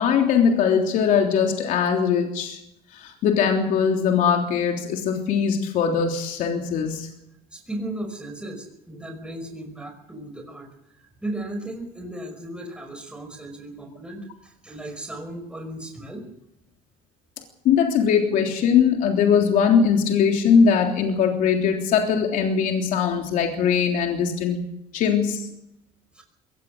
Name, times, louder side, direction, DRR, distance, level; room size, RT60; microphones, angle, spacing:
voice 1, 0.0-2.6 2.9-7.1 17.6-24.6 24.9-25.5, left 7 dB, 65° left, 2 dB, 3.4 m, -21 dB
voice 2, 7.5-10.7 11.0-16.2 26.1-26.2, right 1 dB, 5° right, 4 dB, 5.5 m, -36 dB
22.5 x 18.5 x 6.7 m, 0.80 s
cardioid pair, 135°, 15 cm